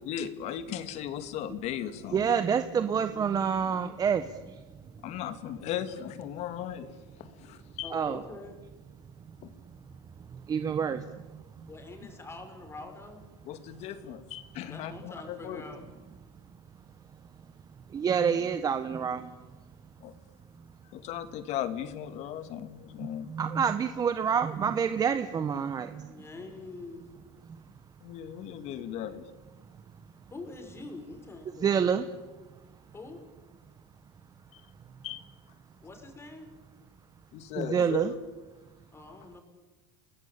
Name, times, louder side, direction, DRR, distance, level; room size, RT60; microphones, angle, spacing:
voice 1, 0.1-2.3 5.0-6.9 7.2-7.9 9.4-9.5 13.4-15.6 20.0-20.1 20.9-23.3 28.0-29.3 34.5-34.6 35.0-35.2 37.3-38.2, left 10 dB, 55° left, 10 dB, 2.5 m, -37 dB
voice 2, 2.1-4.6 7.9-8.2 10.3-11.7 17.9-19.4 23.3-26.1 31.6-32.1 37.5-38.1, right 7 dB, 25° right, 10 dB, 1.3 m, -28 dB
voice 3, 7.8-8.6 11.7-13.3 14.7-15.8 26.1-27.1 30.3-31.9 32.9-33.2 35.8-36.5 38.9-39.4, left 3 dB, 20° left, 5 dB, 5.9 m, -45 dB
29.5 x 19.5 x 8.8 m, 1.2 s
supercardioid pair, 125°, 14 cm